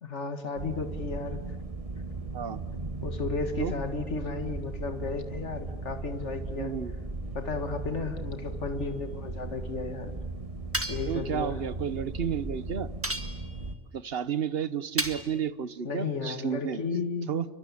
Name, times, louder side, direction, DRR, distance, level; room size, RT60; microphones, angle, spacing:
voice 1, 0.0-1.4 3.0-6.7 7.4-10.2 10.9-11.6 15.8-17.3, left 4 dB, 85° left, 7 dB, 2.2 m, -34 dB
sound 1, 0.6-13.8, right 2 dB, 30° right, 1.4 m, -37 dB
voice 2, 6.6-6.9 11.1-12.9 13.9-16.8 17.3-17.5, right 8 dB, 60° right, 14 dB, 1.3 m, -31 dB
sound 2, 10.7-11.2 13.0-13.6 15.0-15.4, right 1 dB, 10° right, 1.5 m, -33 dB
29.0 x 23.5 x 8.6 m, 1.2 s
omnidirectional pair, 1.2 m